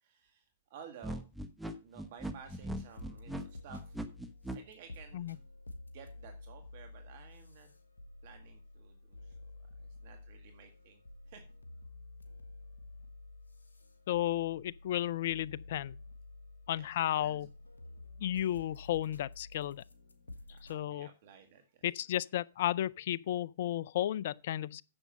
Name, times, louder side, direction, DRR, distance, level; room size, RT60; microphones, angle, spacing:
voice 1, 0.0-1.3 1.6-4.0 4.5-5.3 5.9-7.7 8.2-9.4 9.8-11.4 16.7-17.4 20.5-21.9, right 7 dB, 55° right, 1.9 m, -55 dB
sound 1, 1.0-4.6, right 1 dB, 5° right, 1.1 m, -40 dB
sound 2, 2.2-20.8, left 2 dB, 85° left, 1.4 m, -51 dB
voice 2, 14.1-16.0 16.7-17.5 18.2-19.8 20.7-21.1 21.8-24.8, left 12 dB, 60° left, 0.4 m, -33 dB
9.7 x 7.3 x 5.3 m
hypercardioid pair, 110°, 0 cm